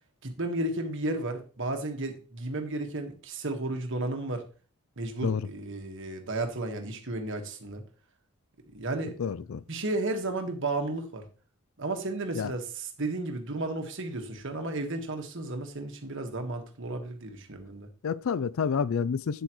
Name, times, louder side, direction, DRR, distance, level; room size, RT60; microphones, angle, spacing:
voice 1, 0.2-4.4 5.0-7.8 8.7-9.2 9.7-11.3 11.8-17.9, right 2 dB, 55° right, 1.5 m, -33 dB
voice 2, 9.2-9.6 12.4-12.5 18.0-19.4, left 6 dB, 65° left, 0.4 m, -29 dB
9.2 x 7.8 x 3.1 m
head